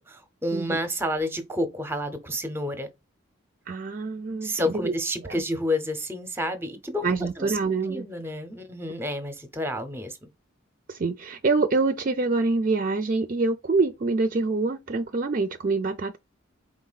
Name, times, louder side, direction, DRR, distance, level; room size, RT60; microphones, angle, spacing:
voice 1, 0.1-2.9 4.4-7.1 7.4-7.6 7.9-10.3, left 1 dB, 10° right, 0.7 m, -30 dB
voice 2, 3.7-4.9 5.2-5.4 7.0-8.1 10.9-16.2, right 3 dB, 40° right, 0.4 m, -26 dB
4.7 x 3.7 x 2.3 m
head